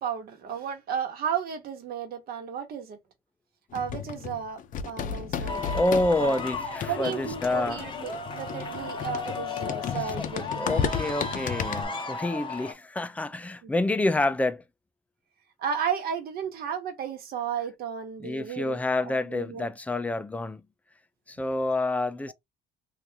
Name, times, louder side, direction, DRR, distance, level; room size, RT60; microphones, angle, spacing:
voice 1, 0.0-3.0 3.7-6.4 6.9-10.9 13.6-13.7 15.6-19.7 22.3-22.4, right 8 dB, 65° right, 1.2 m, -34 dB
sound 1, 3.7-11.8, left 7 dB, 50° left, 0.6 m, -34 dB
voice 2, 5.4-7.8 10.6-14.6 18.2-20.6 21.3-22.3, left 2 dB, 10° left, 0.4 m, -28 dB
sound 2, 5.5-12.7, left 3 dB, 30° left, 1.0 m, -35 dB
2.9 x 2.5 x 3.5 m
cardioid pair, 110°, 17 cm